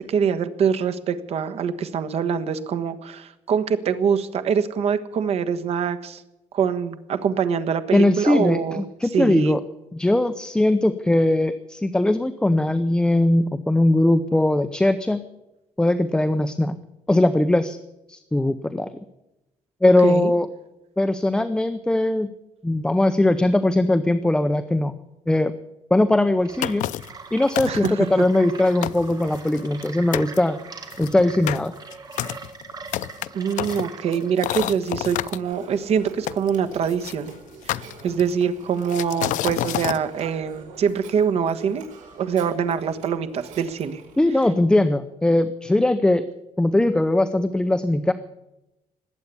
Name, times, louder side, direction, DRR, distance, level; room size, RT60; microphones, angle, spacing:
voice 1, 0.1-6.2 6.5-8.8 9.1-9.5 20.0-20.3 27.7-28.2 33.3-37.3 37.6-37.8 38.0-41.8 42.2-44.0, right 7 dB, 55° right, 10 dB, 1.3 m, -24 dB
voice 2, 7.9-9.6 9.9-15.2 15.8-16.8 17.1-17.8 18.1-18.9 19.8-20.5 21.0-22.3 22.6-24.9 25.3-25.5 25.9-26.9 27.3-30.6 31.0-31.7 44.2-46.2 46.6-48.1, left 1 dB, 5° left, 10 dB, 0.6 m, -20 dB
sound 1, 26.4-34.3, right 4 dB, 30° right, 1.8 m, -41 dB
sound 2, 26.6-27.2 27.5-28.1 28.5-28.6 28.8-29.9 30.1-30.4 30.9-35.4 36.3-37.1 37.7-38.4 38.9-40.0, left 14 dB, 90° left, 0.5 m, -29 dB
Telephone, 35.4-44.5, right 5 dB, 80° right, 5.0 m, -44 dB
20.0 x 8.4 x 8.3 m, 0.93 s
cardioid pair, 150°, 13 cm